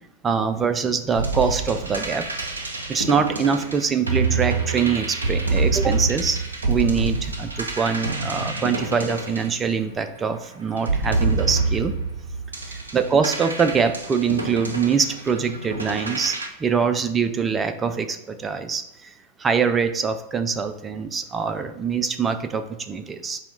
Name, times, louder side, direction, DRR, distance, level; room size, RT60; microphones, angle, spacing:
voice 1, 0.2-2.3 2.9-6.4 6.7-11.9 12.6-19.1 19.4-23.4, right 6 dB, 20° right, 8 dB, 0.3 m, -24 dB
sound 1, 1.1-10.2 10.8-16.5, right 3 dB, 75° right, 0.5 m, -27 dB
4.1 x 2.3 x 3.9 m, 0.84 s
figure-of-eight pair, 90°, 0 cm